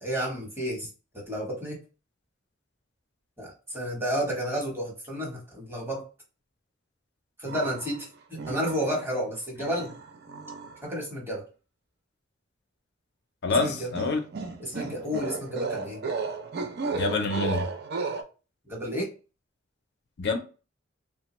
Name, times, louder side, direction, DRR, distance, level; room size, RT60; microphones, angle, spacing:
voice 1, 0.0-0.9 1.1-1.8 3.4-6.0 7.4-9.9 10.8-11.4 13.6-13.9 14.6-16.0 18.7-19.1, equal, 10° right, 1.0 m, -31 dB
sound 1, 7.5-8.0 8.4-9.2 9.6-10.8 13.5-18.2, right 4 dB, 55° right, 0.4 m, -34 dB
voice 2, 13.4-14.2 16.9-17.7 20.2-20.4, left 3 dB, 60° left, 0.5 m, -26 dB
3.2 x 2.1 x 3.0 m
head